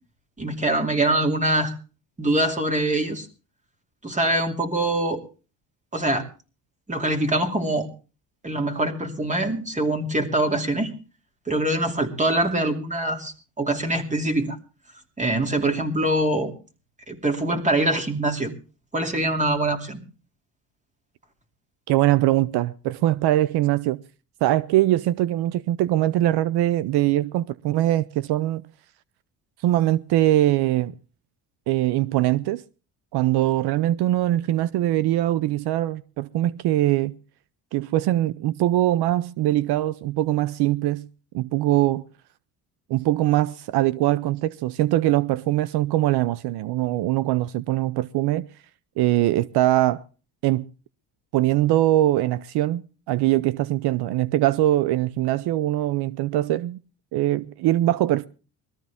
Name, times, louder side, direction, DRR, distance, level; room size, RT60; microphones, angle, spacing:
voice 1, 0.4-1.7 2.2-3.3 4.0-5.2 5.9-6.3 6.9-7.9 8.4-11.0 11.5-14.6 15.2-16.5 17.1-18.5 18.9-20.0, right 1 dB, 20° right, 2.7 m, -24 dB
voice 2, 21.9-24.0 24.4-28.6 29.6-30.9 31.7-32.6 33.1-37.2 37.7-41.1 41.3-42.0 42.9-48.5 49.0-50.0 50.4-50.7 51.3-56.8 57.1-58.3, right 14 dB, 75° right, 0.6 m, -22 dB
21.0 x 14.0 x 3.5 m
cardioid pair, 125°, 39 cm